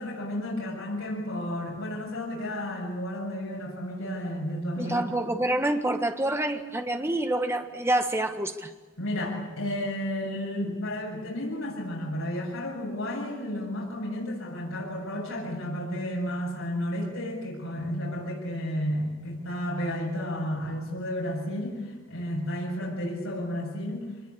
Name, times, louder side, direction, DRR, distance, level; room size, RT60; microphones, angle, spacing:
voice 1, 0.0-5.1 9.0-24.1, left 1 dB, 75° left, -3 dB, 7.6 m, -32 dB
voice 2, 4.8-8.7, right 1 dB, 10° right, 6 dB, 1.5 m, -27 dB
25.0 x 21.0 x 8.6 m, 1.3 s
head